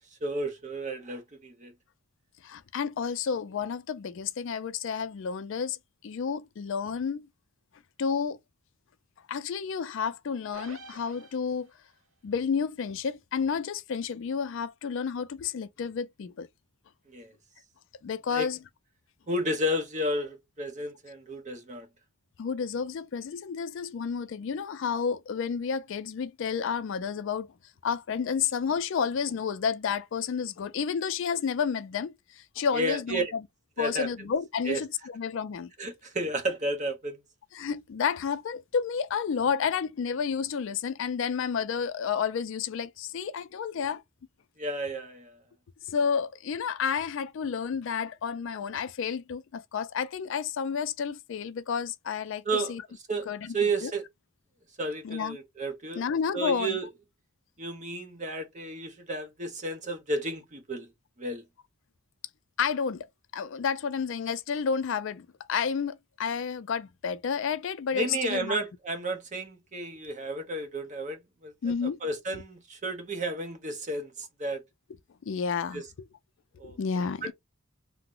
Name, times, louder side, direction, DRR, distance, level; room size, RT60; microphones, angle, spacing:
voice 1, 0.2-1.7 17.1-17.3 18.3-18.5 19.3-21.9 32.7-33.3 33.8-34.1 34.7-34.8 35.8-37.2 44.6-45.3 52.4-52.7 53.1-53.3 53.5-54.0 54.8-56.0 56.3-56.9 57.6-60.9 61.2-61.4 67.9-71.5 72.0-74.6 75.7-75.8 76.6-76.8 77.2-77.3, right 1 dB, 35° right, 0.8 m, -32 dB
voice 2, 2.4-5.8 6.0-7.3 8.0-8.4 9.3-11.7 12.2-16.5 18.0-18.6 22.4-27.5 27.8-33.4 33.8-35.7 37.5-44.0 45.9-52.8 53.3-53.5 53.8-53.9 55.0-55.4 55.9-56.8 62.6-63.1 63.3-68.6 71.6-72.0 72.3-72.4 75.3-75.8 76.6-77.3, left 6 dB, 60° left, 0.3 m, -31 dB
sound 1, 10.5-11.9, right 2 dB, 65° right, 1.1 m, -48 dB
2.9 x 2.0 x 3.5 m
head